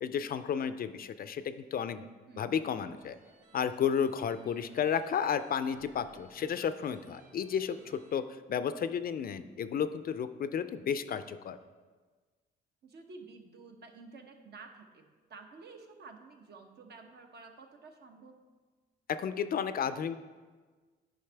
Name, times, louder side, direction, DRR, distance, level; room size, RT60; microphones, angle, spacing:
voice 1, 0.0-2.1 2.4-3.1 3.5-8.2 8.5-11.6 19.1-20.2, left 7 dB, 50° left, 12 dB, 0.4 m, -32 dB
sound 1, 3.0-8.2, right 2 dB, 40° right, 1.9 m, -60 dB
voice 2, 12.8-18.3, right 4 dB, 55° right, 4 dB, 0.9 m, -51 dB
9.9 x 5.2 x 3.4 m, 1.4 s
cardioid pair, 90°, 20 cm